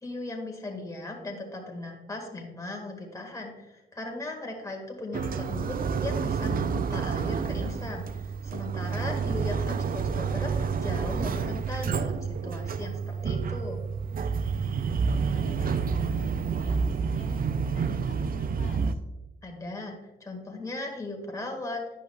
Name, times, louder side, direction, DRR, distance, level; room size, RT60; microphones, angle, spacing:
voice 1, 0.0-13.8 19.4-20.0 20.2-21.8, left 2 dB, 15° left, 1 dB, 1.7 m, -37 dB
sound 1, 5.1-18.9, right 5 dB, 45° right, 0.4 m, -29 dB
voice 2, 9.0-9.5 9.8-9.9 15.0-19.0, left 4 dB, 70° left, 0 dB, 1.2 m, -47 dB
10.5 x 5.5 x 2.3 m, 1.0 s
cardioid pair, 65°, 21 cm